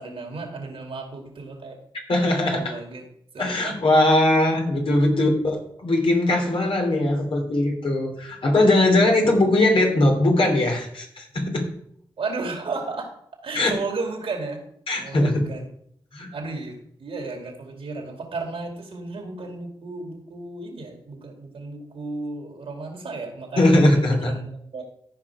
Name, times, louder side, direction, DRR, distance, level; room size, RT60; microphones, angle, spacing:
voice 1, 0.0-1.8 2.3-3.0 3.3-3.8 4.9-5.2 12.2-13.1 13.4-14.6 15.0-15.7 16.3-24.8, right 3 dB, 75° right, 2 dB, 2.4 m, -34 dB
voice 2, 2.1-2.6 3.4-11.7 13.5-13.7 14.9-15.3 16.1-16.3 23.6-24.3, left 1 dB, 70° left, 0 dB, 2.9 m, -20 dB
14.0 x 5.0 x 4.9 m, 0.69 s
cardioid pair, 55°, 10 cm